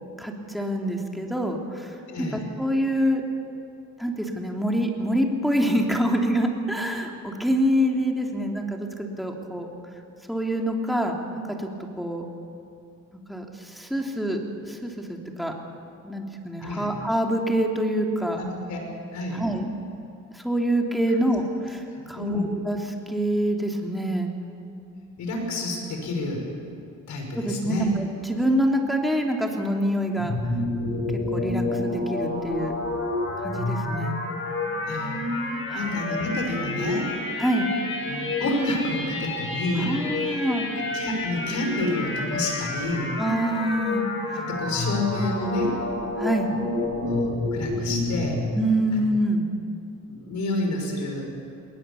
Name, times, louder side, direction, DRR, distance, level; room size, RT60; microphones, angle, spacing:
voice 1, 0.2-3.2 4.0-9.7 10.3-11.7 12.0-12.3 13.3-15.5 16.0-18.4 19.3-19.7 20.3-24.3 27.3-30.4 31.1-32.7 33.4-34.2 35.7-36.0 37.4-37.7 39.8-40.7 43.2-44.4 46.2-46.6 48.5-49.5, equal, ahead, 1 dB, 3.0 m, -26 dB
voice 2, 2.1-2.4 16.6-16.9 18.3-18.8 19.1-19.4 21.9-22.5 25.2-26.5 27.1-27.9 34.9-35.2 35.7-37.1 38.1-39.9 40.9-43.1 44.4-45.8 46.9-48.4 48.9-49.0 50.1-51.3, left 2 dB, 70° left, 2 dB, 5.5 m, -29 dB
sound 1, 30.2-48.3, left 2 dB, 45° left, 6.7 m, -29 dB
21.0 x 19.0 x 7.1 m, 2.6 s
cardioid pair, 90°, 30 cm